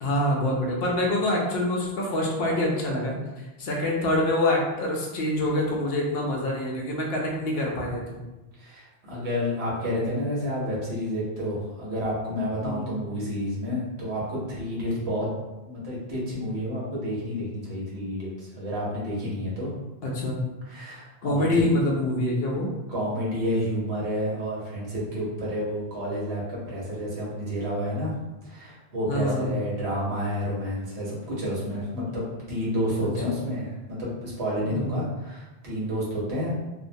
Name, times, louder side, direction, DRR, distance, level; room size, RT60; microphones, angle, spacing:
voice 1, 0.0-8.2 12.6-12.9 20.0-20.4 21.2-22.7 29.1-29.5 33.0-33.4 34.7-34.9, left 1 dB, 70° left, -1 dB, 0.7 m, -26 dB
voice 2, 8.6-15.3 15.7-19.7 20.7-21.7 22.9-28.1 28.4-36.7, equal, 75° right, -6 dB, 1.1 m, -30 dB
2.5 x 2.1 x 2.6 m, 1.1 s
omnidirectional pair, 1.1 m